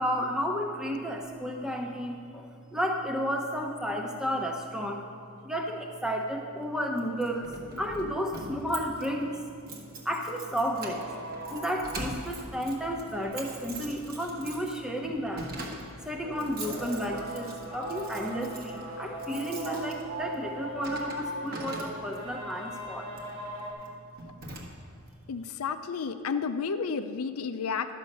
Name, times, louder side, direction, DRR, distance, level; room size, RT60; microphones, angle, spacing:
voice 1, 0.0-5.0 5.4-9.4 10.0-15.5 16.0-23.1, equal, 5° right, 1 dB, 0.9 m, -32 dB
Keys jangling, 7.0-22.3 23.1-23.4 23.8-23.9 24.2-25.1, right 2 dB, 45° right, 1.4 m, -43 dB
sound 1, 10.7-23.7, right 1 dB, 80° right, 2.7 m, -40 dB
voice 2, 25.3-28.0, left 5 dB, 85° left, 9 dB, 0.5 m, -32 dB
12.0 x 7.3 x 5.4 m, 2.4 s
head